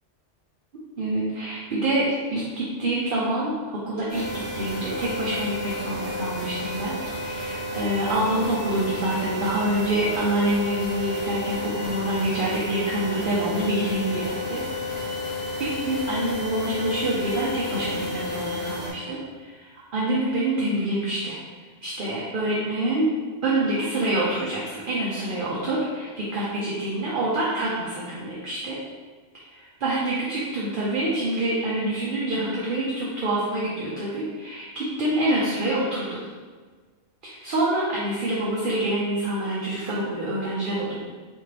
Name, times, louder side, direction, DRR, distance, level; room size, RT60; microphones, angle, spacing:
voice 1, 1.0-14.7 15.6-21.4 21.8-23.1 23.4-28.8 29.5-36.2 37.2-41.0, right 1 dB, 55° right, -6 dB, 0.8 m, -26 dB
sound 1, 4.1-18.9, left 1 dB, 60° left, 2.0 m, -32 dB
4.4 x 3.4 x 2.9 m, 1.5 s
omnidirectional pair, 1.2 m